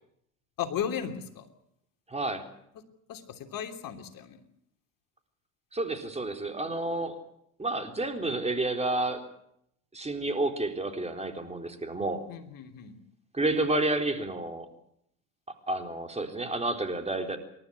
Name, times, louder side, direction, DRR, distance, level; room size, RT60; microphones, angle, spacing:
voice 1, 0.6-1.5 3.1-4.4 12.3-12.9, left 8 dB, 50° left, 6 dB, 3.1 m, -35 dB
voice 2, 2.1-2.4 5.7-7.2 7.6-9.2 9.9-12.2 13.3-14.7 15.7-17.4, right 2 dB, 15° right, 5 dB, 4.0 m, -30 dB
28.0 x 13.0 x 9.8 m, 0.74 s
hypercardioid pair, 80°, 41 cm